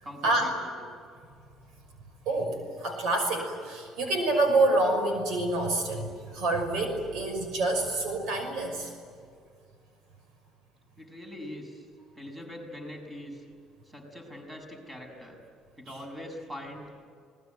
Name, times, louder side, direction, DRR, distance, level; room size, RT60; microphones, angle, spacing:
voice 1, 0.0-0.7 11.0-11.9 12.1-13.4 13.8-15.4 15.8-16.9, left 1 dB, 15° right, 3 dB, 6.5 m, -42 dB
voice 2, 2.3-8.9, right 2 dB, 75° right, 5 dB, 6.0 m, -27 dB
27.5 x 20.5 x 9.5 m, 2.2 s
cardioid pair, 115°, 0 cm